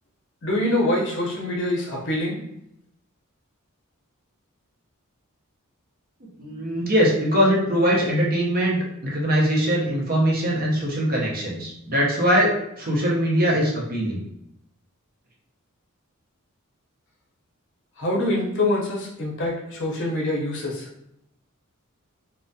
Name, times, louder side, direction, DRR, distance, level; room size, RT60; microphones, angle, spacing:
voice 1, 0.4-2.4 18.0-20.9, left 1 dB, 60° left, -2 dB, 0.7 m, -25 dB
voice 2, 6.2-14.2, equal, 45° right, -3 dB, 0.6 m, -22 dB
2.3 x 2.1 x 2.6 m, 0.80 s
head